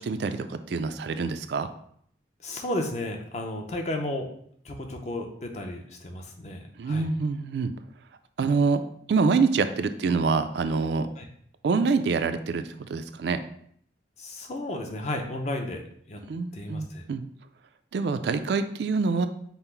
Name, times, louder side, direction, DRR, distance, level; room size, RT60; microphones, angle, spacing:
voice 1, 0.0-1.7 6.8-7.7 8.4-8.8 9.1-11.1 11.6-13.4 16.3-17.2 17.9-19.3, right 4 dB, 65° right, 9 dB, 0.3 m, -26 dB
voice 2, 2.4-4.3 4.6-7.1 11.2-11.3 14.2-15.8 16.1-16.2 16.5-17.0, left 1 dB, 40° left, 2 dB, 0.6 m, -33 dB
5.5 x 2.0 x 4.4 m, 0.65 s
head